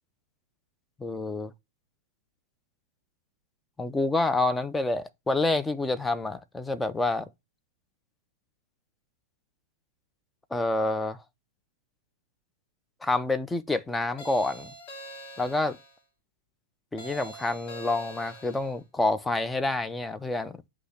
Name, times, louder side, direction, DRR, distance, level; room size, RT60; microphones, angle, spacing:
voice 1, 1.0-1.5 3.8-7.3 10.5-11.2 13.0-14.7 15.4-15.8 16.9-20.6, left 2 dB, 10° left, 0.5 m, -28 dB
sound 1, 14.2-15.9 17.0-18.7, right 1 dB, 45° left, 2.7 m, -44 dB
7.9 x 2.9 x 5.8 m
figure-of-eight pair, 100°, 0 cm